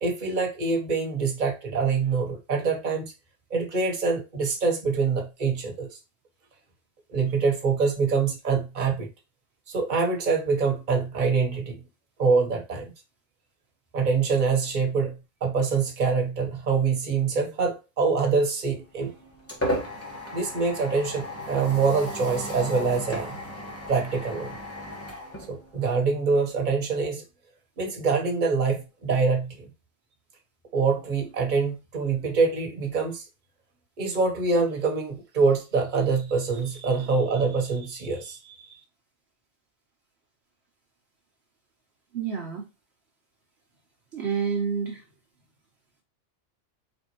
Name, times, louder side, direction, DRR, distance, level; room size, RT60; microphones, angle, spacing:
voice 1, 0.0-3.1 3.5-5.9 7.1-9.1 9.7-11.8 12.2-12.9 13.9-19.1 20.3-23.3 23.9-24.5 25.5-27.2 27.8-29.7 30.7-33.2 34.0-38.8, right 4 dB, 40° right, 1.1 m, -25 dB
sound 1, 18.8-26.2, equal, 10° left, 1.0 m, -35 dB
voice 2, 42.1-42.6 44.1-45.0, right 6 dB, 60° right, 1.0 m, -29 dB
4.3 x 3.5 x 2.9 m
omnidirectional pair, 1.3 m